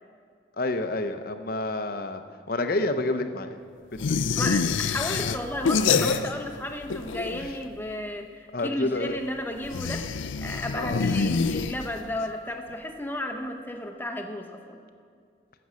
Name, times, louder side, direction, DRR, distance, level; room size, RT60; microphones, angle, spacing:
voice 1, 0.6-2.2 2.5-3.6 4.1-4.3 5.2-5.4 5.9-6.2 7.4-7.5 8.5-9.2 10.7-11.0, left 2 dB, 50° left, 8 dB, 0.7 m, -29 dB
sound 1, 4.0-6.6 6.8-7.7 9.6-12.2, left 5 dB, 85° left, 0.5 m, -26 dB
voice 2, 4.4-14.8, left 1 dB, 10° left, 5 dB, 0.8 m, -33 dB
15.5 x 6.9 x 6.3 m, 2.2 s
head